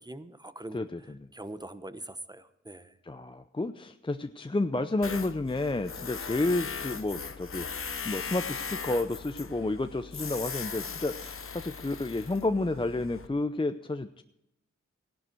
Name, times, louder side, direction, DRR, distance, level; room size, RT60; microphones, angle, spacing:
voice 1, 0.1-0.9 1.3-2.9, right 1 dB, 15° right, 12 dB, 1.0 m, -42 dB
voice 2, 0.7-1.3 3.0-7.7 8.0-14.2, left 2 dB, 15° left, 9 dB, 0.6 m, -31 dB
Tools, 5.0-13.3, left 5 dB, 45° left, 0.9 m, -39 dB
15.0 x 11.0 x 4.6 m, 0.85 s
cardioid pair, 45°, 30 cm